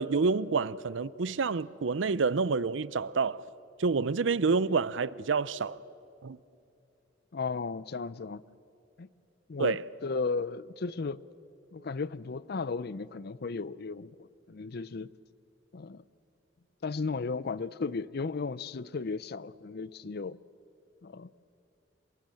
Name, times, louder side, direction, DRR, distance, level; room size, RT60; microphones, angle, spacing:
voice 1, 0.0-3.4 3.8-5.8 6.2-6.4 9.6-9.8, right 4 dB, 90° right, 0.6 m, -28 dB
voice 2, 7.3-8.4 9.0-9.1 9.5-11.2 11.7-14.2 14.5-15.1 15.7-16.0 16.8-20.4 21.0-21.3, left 4 dB, 55° left, 0.5 m, -35 dB
27.5 x 23.0 x 7.6 m
head